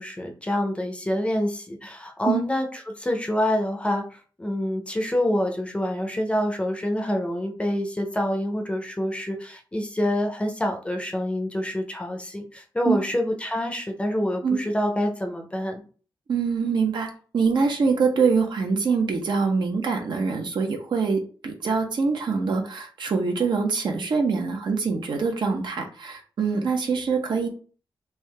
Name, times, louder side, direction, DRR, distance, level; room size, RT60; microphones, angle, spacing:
voice 1, 0.0-15.8, left 1 dB, 15° left, 3 dB, 0.6 m, -27 dB
voice 2, 16.3-27.5, right 5 dB, 65° right, 3 dB, 0.8 m, -24 dB
3.5 x 2.8 x 3.3 m, 0.39 s
wide cardioid pair, 155°, 8 cm